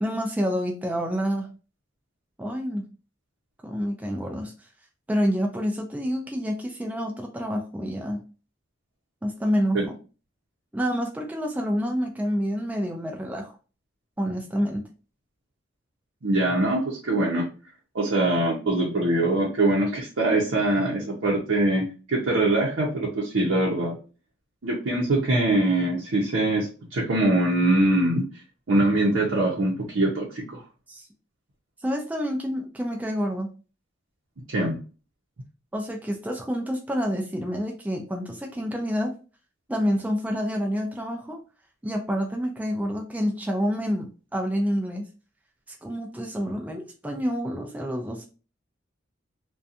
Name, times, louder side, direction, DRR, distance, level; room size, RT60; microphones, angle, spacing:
voice 1, 0.0-1.5 2.4-2.8 3.6-4.5 5.1-8.2 9.2-9.9 10.7-13.5 14.2-14.8 30.9-31.1 31.8-33.5 35.7-39.1 39.7-41.4 41.8-45.1 45.8-48.3, equal, 10° right, 1 dB, 0.3 m, -28 dB
voice 2, 16.2-17.5 17.9-24.0 24.6-28.2 28.7-30.6 34.5-34.8, right 2 dB, 80° right, -4 dB, 0.7 m, -23 dB
2.5 x 2.2 x 2.6 m, 0.34 s
head